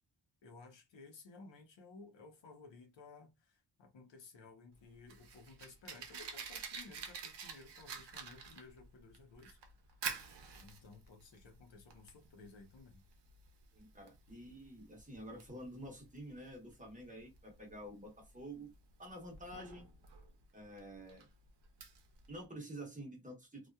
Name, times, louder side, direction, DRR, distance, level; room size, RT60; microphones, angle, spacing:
voice 1, 0.4-9.6 10.6-13.0, left 3 dB, 80° left, 0.9 m, -57 dB
Fire, 4.7-22.4, right 6 dB, 65° right, 0.7 m, -49 dB
voice 2, 13.7-18.7 19.0-19.9 20.5-21.3 22.3-23.7, right 1 dB, 20° right, 0.9 m, -49 dB
2.8 x 2.4 x 2.3 m
wide cardioid pair, 125°, 44 cm